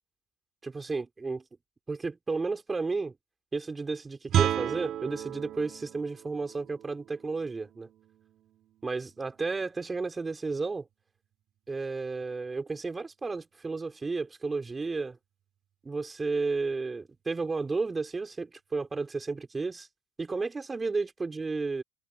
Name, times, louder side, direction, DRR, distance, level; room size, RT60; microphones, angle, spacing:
voice 1, 0.6-1.4 1.9-3.1 3.5-7.9 8.8-10.9 11.7-15.2 15.8-19.9 20.2-21.8, right 4 dB, 20° right, 5.2 m, -32 dB
Guitar, 4.3-9.8, right 11 dB, 50° right, 7.2 m, -34 dB
supercardioid pair, 100°, 0 cm